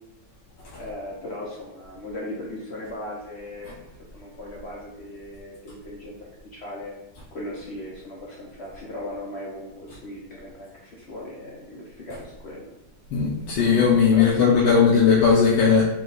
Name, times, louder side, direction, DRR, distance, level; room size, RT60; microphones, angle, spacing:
voice 1, 0.7-6.9 7.3-12.7 14.1-15.7, left 1 dB, 60° left, -3 dB, 0.7 m, -37 dB
voice 2, 13.1-15.8, left 6 dB, 85° left, -4 dB, 1.4 m, -18 dB
4.5 x 2.4 x 3.9 m, 0.95 s
omnidirectional pair, 1.9 m